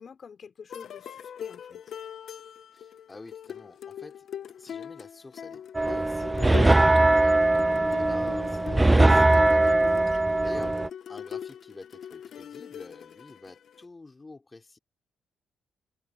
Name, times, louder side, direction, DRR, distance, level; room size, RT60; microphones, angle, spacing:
voice 1, 0.0-1.8 10.4-10.8, left 6 dB, 45° left, 4.4 m, -46 dB
sound 1, 0.7-13.8, left 8 dB, 65° left, 1.6 m, -40 dB
voice 2, 2.7-4.3 4.5-7.5 8.0-9.9 10.4-10.7 11.1-14.8, left 3 dB, 20° left, 4.4 m, -47 dB
sound 2, 5.7-10.9, right 2 dB, 15° right, 0.4 m, -21 dB
cardioid pair, 105°, 0 cm